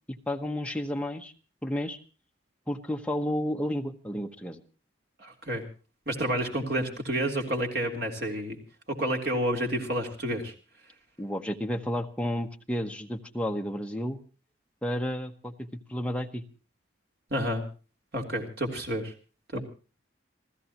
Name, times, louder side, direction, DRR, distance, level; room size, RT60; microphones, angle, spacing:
voice 1, 0.1-1.3 1.6-2.0 2.7-4.6 11.2-14.2 14.8-16.4 19.5-19.6, equal, 5° left, 4 dB, 1.0 m, -32 dB
voice 2, 5.2-5.6 6.1-8.6 8.9-10.5 17.3-17.6 18.1-19.1 19.5-19.6, right 1 dB, 55° right, 3 dB, 3.6 m, -29 dB
28.5 x 15.5 x 3.0 m, 0.35 s
head